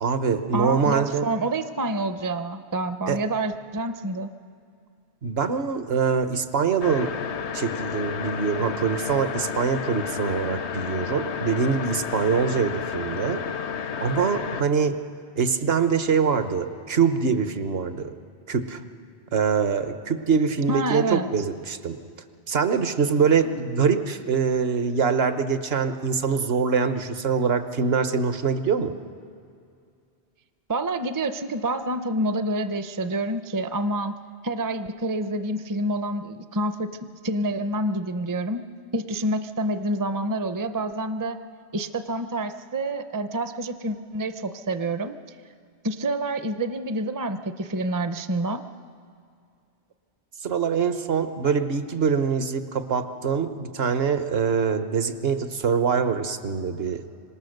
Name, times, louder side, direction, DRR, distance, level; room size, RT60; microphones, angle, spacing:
voice 1, 0.0-1.3 3.1-3.2 5.2-7.1 7.5-13.4 14.0-15.0 15.4-18.1 18.5-18.8 19.3-22.0 22.5-28.9 50.4-57.1, right 6 dB, 65° right, 9 dB, 1.3 m, -24 dB
voice 2, 0.5-4.3 20.7-21.3 30.7-34.1 34.4-36.9 37.2-38.6 38.9-41.4 41.7-45.1 45.8-48.6, right 1 dB, 25° right, 9 dB, 0.5 m, -27 dB
sound 1, 6.8-14.6, left 7 dB, 85° left, 1.1 m, -31 dB
25.5 x 18.0 x 6.6 m, 2.3 s
omnidirectional pair, 1.1 m